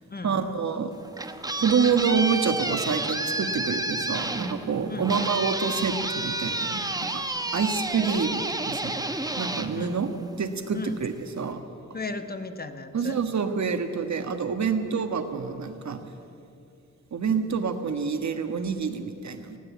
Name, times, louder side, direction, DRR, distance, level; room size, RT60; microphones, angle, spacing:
voice 1, 0.2-0.9 1.6-6.8 7.1-7.2 7.5-8.9 9.4-10.1 10.4-11.6 12.9-16.0 17.1-19.6, right 6 dB, 60° right, 7 dB, 1.5 m, -27 dB
sound 1, 0.9-10.6, right 2 dB, 10° right, 1.0 m, -30 dB
voice 2, 11.9-13.2, left 3 dB, 30° left, 8 dB, 1.1 m, -35 dB
19.0 x 16.0 x 8.3 m, 2.5 s
wide cardioid pair, 135°, 31 cm